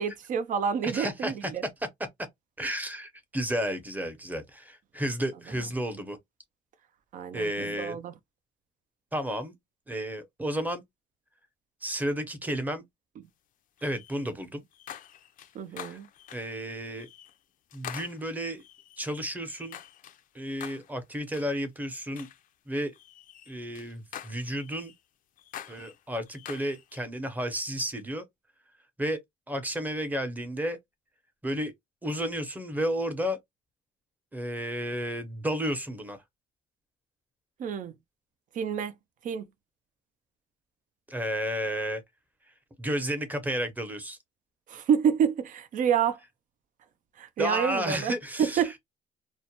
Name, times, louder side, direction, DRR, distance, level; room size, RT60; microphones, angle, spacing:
voice 1, 0.0-1.6 7.1-8.1 15.5-16.1 37.6-38.0 38.5-38.9 39.2-39.5 44.7-46.2 47.2-48.8, right 7 dB, 50° right, 0.5 m, -28 dB
voice 2, 0.8-1.5 2.6-6.2 7.3-8.0 9.1-9.5 9.9-10.8 11.8-12.8 13.8-14.6 15.8-16.0 16.3-17.1 17.7-18.6 19.0-19.8 20.3-22.3 22.7-22.9 23.5-24.9 25.7-28.2 29.0-29.2 29.5-30.8 31.4-31.7 32.0-33.4 34.3-36.2 41.1-42.0 42.8-44.2 47.4-48.8, equal, 10° right, 0.8 m, -32 dB
sound 1, 13.8-14.3 14.7-16.6 16.9-17.4 17.7-20.2 20.6-21.0 21.3-21.6 22.1-22.5 22.9-25.0 25.4-27.1, left 10 dB, 55° left, 0.5 m, -46 dB
2.4 x 2.1 x 2.9 m
cardioid pair, 110°, 17 cm